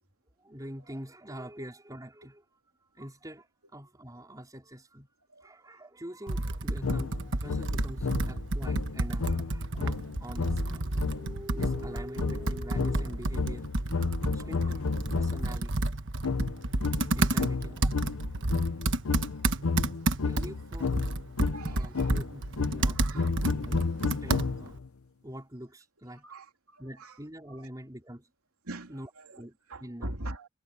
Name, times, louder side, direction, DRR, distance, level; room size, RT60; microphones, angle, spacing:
voice 1, 0.4-5.1 5.4-13.7 14.3-15.9 17.1-18.1 20.2-21.0 21.6-24.8 25.2-26.3 26.8-28.3 28.9-30.2, equal, 15° right, 4.4 m, -45 dB
Computer keyboard, 6.3-24.8, right 2 dB, 55° right, 1.3 m, -31 dB
sound 1, 6.8-15.6 16.2-24.9, left 4 dB, 80° left, 0.7 m, -32 dB
voice 2, 14.0-14.5 21.5-22.1 23.0-23.3 26.2-27.1 28.7-29.4 29.7-30.5, right 1 dB, 90° right, 3.1 m, -42 dB
head